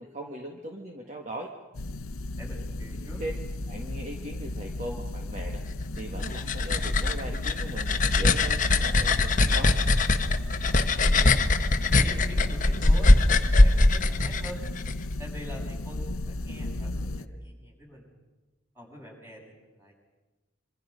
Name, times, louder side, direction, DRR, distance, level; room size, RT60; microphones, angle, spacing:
voice 1, 0.0-1.5 3.2-3.3 3.7-5.6 6.0-9.7, right 1 dB, 35° right, 1 dB, 1.8 m, -39 dB
sound 1, 1.7-17.3, left 2 dB, 90° left, 0.9 m, -35 dB
voice 2, 2.0-3.2 11.1-14.7 15.2-18.1 18.7-19.9, equal, 10° right, -2 dB, 6.8 m, -45 dB
sound 2, 6.0-14.9, left 2 dB, 40° left, 1.1 m, -22 dB
26.5 x 25.5 x 5.3 m, 1.2 s
head